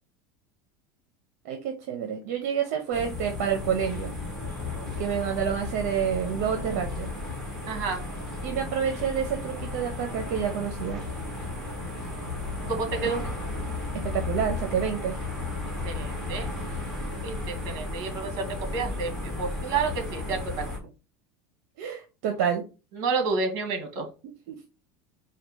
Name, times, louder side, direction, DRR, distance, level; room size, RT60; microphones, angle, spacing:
voice 1, 1.4-4.1 5.0-7.1 8.4-11.0 14.0-15.2 21.8-22.6 24.5-24.6, right 8 dB, 70° right, 5 dB, 0.9 m, -28 dB
sound 1, 2.9-20.8, left 2 dB, ahead, 1.7 m, -34 dB
voice 2, 7.7-8.0 12.6-13.2 15.8-16.5 17.2-20.7 22.9-24.1, right 4 dB, 50° right, 6 dB, 1.5 m, -30 dB
4.3 x 2.3 x 4.7 m, 0.30 s
supercardioid pair, 155°, 9 cm